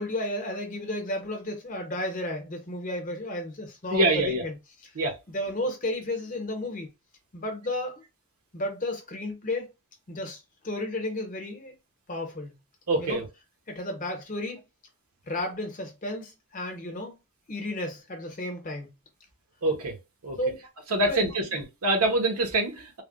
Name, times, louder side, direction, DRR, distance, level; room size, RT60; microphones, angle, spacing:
voice 1, 0.0-4.6 5.3-6.9 7.3-8.0 8.5-9.7 10.1-11.7 12.1-12.5 13.0-13.2 13.7-14.6 15.3-17.2 17.5-18.9 20.4-20.5 21.0-21.6, left 1 dB, 35° left, 0.8 m, -33 dB
voice 2, 3.9-4.4 5.0-5.2 12.9-13.2 19.6-19.9 20.2-20.4 20.9-23.0, right 2 dB, 75° right, 0.8 m, -25 dB
3.3 x 2.1 x 2.4 m
head